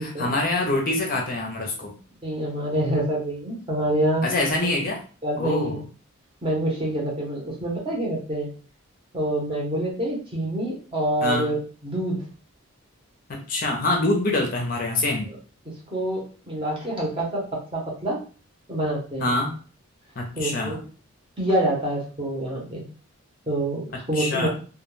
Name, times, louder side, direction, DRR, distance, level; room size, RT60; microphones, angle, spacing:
voice 1, 0.0-1.9 4.2-5.0 5.4-5.8 11.2-11.5 13.3-15.3 19.2-19.6 20.2-20.8 24.1-24.5, left 2 dB, 40° left, 1 dB, 0.5 m, -25 dB
voice 2, 2.2-4.2 5.2-5.8 6.4-8.5 9.1-11.6 11.8-12.2 15.9-18.2 18.7-19.3 20.3-20.8 21.4-22.8 23.5-24.5, right 1 dB, 25° right, -3 dB, 0.7 m, -26 dB
2.2 x 2.1 x 3.0 m, 0.39 s
head